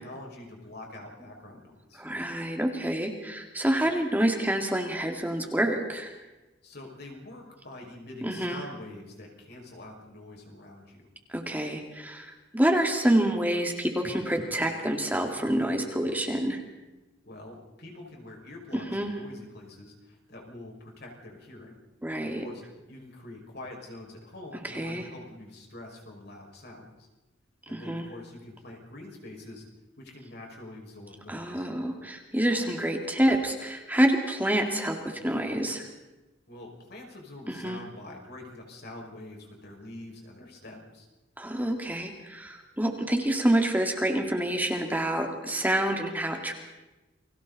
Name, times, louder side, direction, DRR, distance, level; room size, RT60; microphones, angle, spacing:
voice 1, 0.0-2.0 6.6-11.1 17.2-21.7 22.2-22.6 22.9-27.1 27.7-29.6 30.0-31.7 36.5-41.1, left 1 dB, 55° left, 0 dB, 5.7 m, -45 dB
voice 2, 2.0-6.1 8.2-8.6 11.3-16.6 18.7-19.1 22.0-22.4 24.6-25.0 27.7-28.1 31.3-35.9 37.5-37.8 41.4-46.5, right 1 dB, 10° right, 3 dB, 2.2 m, -27 dB
30.0 x 22.5 x 4.1 m, 1.1 s
head